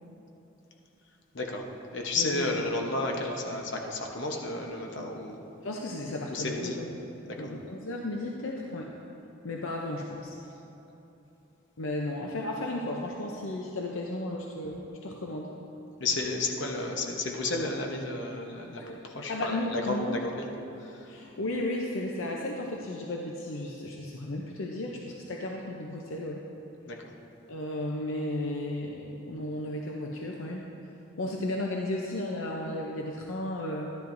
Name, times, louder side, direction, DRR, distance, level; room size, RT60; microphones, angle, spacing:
voice 1, 1.3-1.7 1.9-5.4 6.3-6.8 7.2-7.5 16.0-18.8 19.1-20.5 20.8-21.0 26.9-27.0, left 2 dB, 60° left, 1 dB, 1.0 m, -32 dB
voice 2, 2.1-2.6 5.6-6.9 7.4-8.9 9.4-10.4 11.8-15.6 18.8-19.0 19.3-20.2 21.1-26.5 27.5-30.7 31.2-34.0, left 1 dB, 75° left, 0 dB, 0.6 m, -34 dB
11.5 x 10.5 x 2.6 m, 3.0 s
head